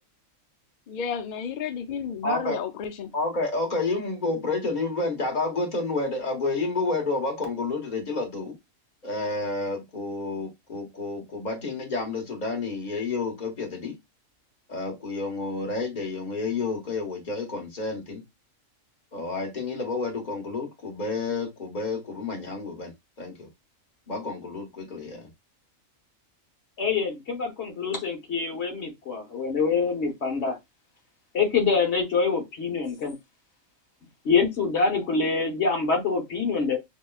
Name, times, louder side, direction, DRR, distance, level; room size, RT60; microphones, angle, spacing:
voice 1, 0.9-3.1, left 7 dB, 75° left, 0.4 m, -32 dB
voice 2, 2.2-2.6 3.1-8.5 9.0-13.9 14.7-18.2 19.1-22.9 23.2-23.5 24.1-25.3, left 3 dB, 35° left, 1.2 m, -30 dB
voice 3, 26.8-30.6 31.3-33.1 34.2-36.8, left 5 dB, 60° left, 1.3 m, -25 dB
6.0 x 2.2 x 2.3 m
omnidirectional pair, 1.4 m